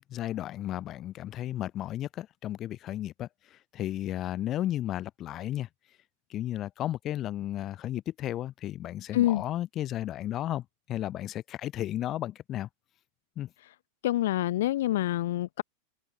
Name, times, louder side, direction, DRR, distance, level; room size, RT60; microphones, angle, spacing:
voice 1, 0.0-5.7 6.3-12.7 13.4-13.5, left 13 dB, 40° left, 1.3 m, -34 dB
voice 2, 9.1-9.4 14.0-15.6, left 14 dB, 70° left, 0.4 m, -26 dB
hypercardioid pair, 100°, 0 cm